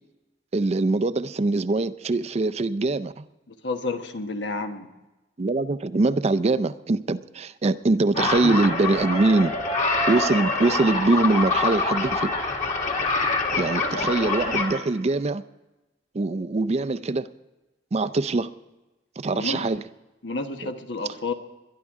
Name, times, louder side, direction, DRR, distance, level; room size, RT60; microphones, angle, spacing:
voice 1, 0.5-3.3 5.4-9.5 10.1-12.3 13.6-15.4 16.1-17.3 17.9-18.5 19.2-19.8 20.6-20.7, right 2 dB, 35° right, 14 dB, 0.5 m, -23 dB
voice 2, 3.5-4.9 19.3-19.7 20.2-21.3, left 3 dB, 85° left, 6 dB, 1.3 m, -30 dB
sound 1, 8.1-14.8, left 3 dB, 45° left, 1.9 m, -25 dB
22.0 x 11.5 x 3.6 m, 1.1 s
head